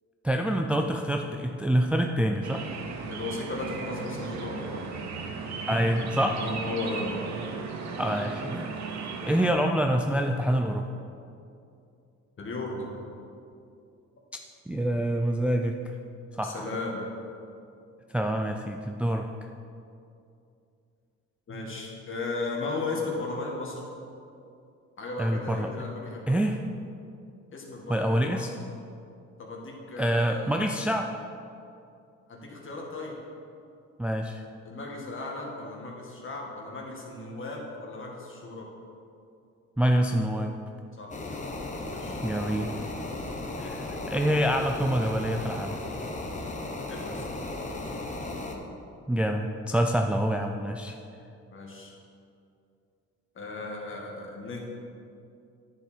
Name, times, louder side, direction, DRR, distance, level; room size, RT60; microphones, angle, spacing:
voice 1, 0.2-2.7 5.7-6.4 8.0-8.7 9.2-10.9 14.7-15.9 16.3-16.7 18.1-19.3 25.2-25.8 26.3-26.6 27.9-28.5 30.0-31.1 34.0-34.4 39.8-40.5 42.2-42.7 43.6-45.8 49.1-51.0, equal, 5° right, 3 dB, 0.4 m, -26 dB
sound 1, 2.4-9.5, right 5 dB, 65° right, 1.0 m, -36 dB
voice 2, 3.1-4.9 6.4-7.2 12.4-13.0 16.4-17.0 21.5-23.8 25.0-26.4 27.5-28.5 29.4-30.8 32.3-33.1 34.6-38.7 41.0-41.1 41.8-42.2 46.9-47.2 51.5-51.9 53.4-54.6, left 3 dB, 40° left, -1 dB, 2.0 m, -36 dB
sound 2, 41.1-48.6, left 2 dB, 25° left, 1.0 m, -35 dB
9.9 x 7.4 x 4.4 m, 2.6 s
cardioid pair, 105°, 30 cm